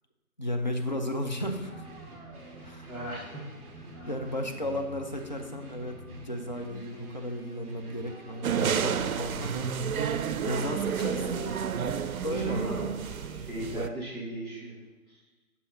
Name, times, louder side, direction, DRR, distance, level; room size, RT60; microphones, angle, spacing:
voice 1, 0.4-1.7 2.6-2.9 4.1-9.7 10.4-11.5 12.2-12.7, left 1 dB, 35° left, 3 dB, 0.4 m, -34 dB
sound 1, 1.3-9.3, right 1 dB, 15° right, 1.0 m, -47 dB
Dog, 1.7-7.7 8.0-14.8, right 1 dB, 20° left, 1.9 m, -59 dB
voice 2, 2.9-3.5 10.9-11.8 12.3-14.7 15.1-15.2, right 1 dB, ahead, -12 dB, 0.7 m, -38 dB
sound 2, 8.4-13.9, right 7 dB, 70° right, 0.5 m, -30 dB
6.6 x 3.4 x 5.3 m, 1.3 s
figure-of-eight pair, 135°, 44 cm